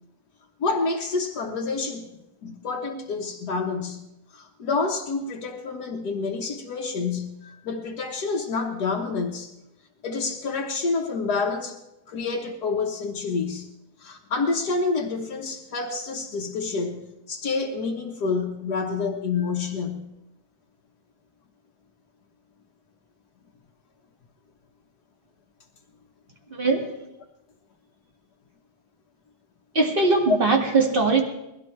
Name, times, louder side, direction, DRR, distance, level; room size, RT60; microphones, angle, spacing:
voice 1, 0.6-2.1 2.4-4.1 4.3-9.5 10.0-11.8 12.1-13.7 14.0-20.1 30.3-30.4, left 4 dB, 75° left, -2 dB, 1.8 m, -28 dB
voice 2, 26.5-26.9 29.7-31.2, right 3 dB, 35° right, 1 dB, 2.2 m, -21 dB
22.0 x 16.5 x 3.2 m, 0.91 s
omnidirectional pair, 1.7 m